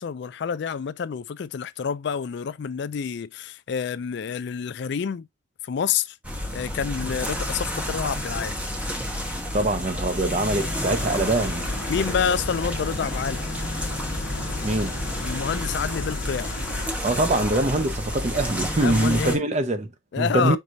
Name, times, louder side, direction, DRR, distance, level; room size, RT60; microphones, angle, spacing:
voice 1, 0.0-5.3 5.6-6.2 6.5-8.6 11.9-13.4 15.2-16.5 18.8-19.4 20.1-20.6, left 7 dB, 60° left, 0.4 m, -28 dB
sound 1, 6.2-19.4, left 1 dB, 10° right, 1.1 m, -30 dB
voice 2, 9.5-11.7 14.6-14.9 17.0-20.6, right 2 dB, 35° right, 0.7 m, -24 dB
sound 2, 10.5-16.9, left 3 dB, 80° left, 1.0 m, -36 dB
4.7 x 3.9 x 2.6 m
head